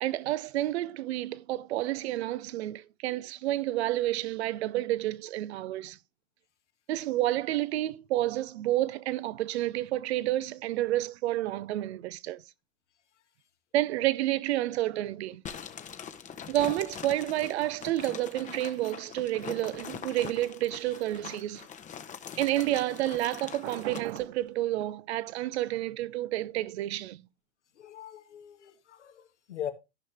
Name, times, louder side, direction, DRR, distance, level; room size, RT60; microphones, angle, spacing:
voice 1, 0.0-6.0 6.9-12.4 13.7-15.4 16.5-21.7 22.4-27.2, right 15 dB, 70° right, 0.7 m, -30 dB
sound 1, 15.5-24.2, left 8 dB, 20° left, 0.9 m, -43 dB
voice 2, 27.8-29.7, left 10 dB, 85° left, 1.8 m, -40 dB
14.0 x 5.5 x 3.3 m
hypercardioid pair, 110°, 35 cm